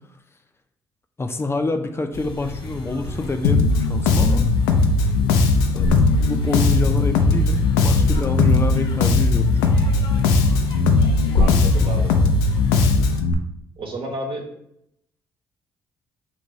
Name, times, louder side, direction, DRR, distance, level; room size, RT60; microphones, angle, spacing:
voice 1, 1.2-4.4 5.7-5.9 6.2-9.8, left 3 dB, 25° left, 6 dB, 0.5 m, -26 dB
sound 1, 2.1-13.2, left 2 dB, 60° left, 0.8 m, -29 dB
Bass guitar, 3.4-13.3, left 3 dB, 85° left, 0.4 m, -18 dB
voice 2, 11.4-12.1 13.8-14.5, right 2 dB, 60° right, 1 dB, 1.1 m, -31 dB
5.3 x 2.5 x 3.1 m, 0.76 s
hypercardioid pair, 50°, 10 cm